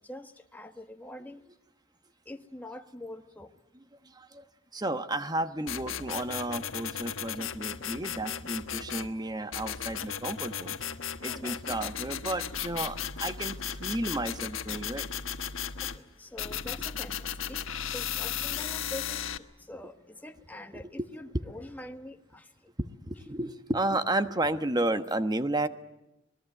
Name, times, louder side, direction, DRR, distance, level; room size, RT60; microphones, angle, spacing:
voice 1, 0.0-1.4 2.2-3.5 11.2-11.9 15.8-22.7 24.8-24.9, left 1 dB, 10° left, 5 dB, 1.3 m, -45 dB
voice 2, 4.0-4.4 4.7-10.8 11.2-15.1 20.7-21.1 22.8-25.7, right 1 dB, 20° right, 10 dB, 1.2 m, -32 dB
sound 1, 5.7-9.1 9.5-16.0 16.4-19.4, left 8 dB, 90° left, 1.4 m, -35 dB
26.5 x 20.5 x 9.1 m, 0.93 s
head